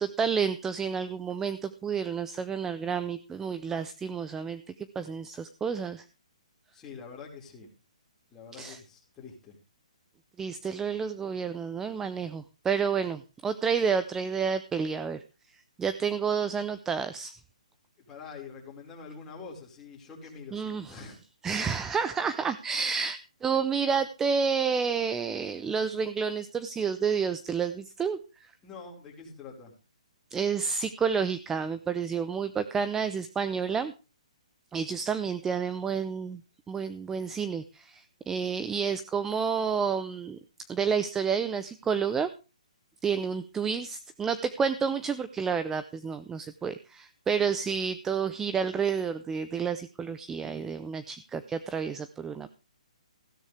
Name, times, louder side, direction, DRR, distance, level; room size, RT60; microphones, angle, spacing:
voice 1, 0.0-6.0 8.5-8.8 10.4-15.2 15.5-17.3 20.5-21.0 21.4-28.5 30.3-33.9 34.7-36.4 36.7-40.4 40.7-42.3 43.0-52.5, right 6 dB, 10° right, 12 dB, 0.6 m, -30 dB
voice 2, 6.7-7.7 8.3-9.6 18.1-21.2 28.6-29.7, left 5 dB, 15° left, -1 dB, 4.9 m, -45 dB
16.0 x 11.5 x 3.4 m, 0.31 s
hypercardioid pair, 150°, 4 cm